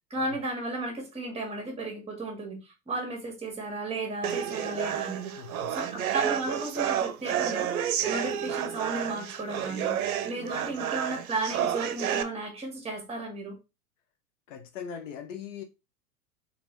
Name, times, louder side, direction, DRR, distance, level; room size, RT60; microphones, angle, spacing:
voice 1, 0.1-5.3 5.7-7.7 8.1-13.6, right 2 dB, 15° right, 1.6 m, -34 dB
sound 1, 4.2-12.2, right 9 dB, 65° right, 0.7 m, -30 dB
voice 2, 5.4-6.1 14.5-15.6, left 7 dB, 50° left, 0.7 m, -41 dB
3.9 x 3.4 x 2.9 m
figure-of-eight pair, 90°, 47 cm